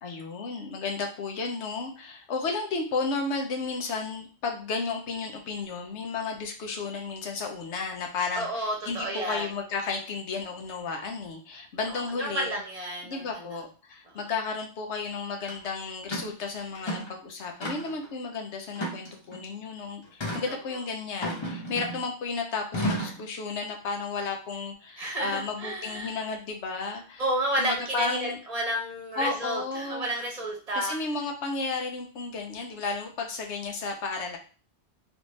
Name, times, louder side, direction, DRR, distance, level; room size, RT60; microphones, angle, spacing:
voice 1, 0.0-12.6 13.0-27.2 27.6-28.4 29.2-30.1 30.8-34.4, left 4 dB, 85° left, 3 dB, 1.0 m, -33 dB
voice 2, 8.3-9.5 11.9-13.6 20.5-20.8 25.0-26.2 27.2-31.0, right 1 dB, 35° right, -1 dB, 1.0 m, -31 dB
sound 1, 15.5-15.6 16.1-16.3 16.7-17.2 17.6-18.1 18.7-19.4 20.2-20.5 21.2-22.1 22.7-23.2, equal, 30° left, 0.8 m, -32 dB
3.3 x 2.5 x 3.1 m, 0.37 s
omnidirectional pair, 1.1 m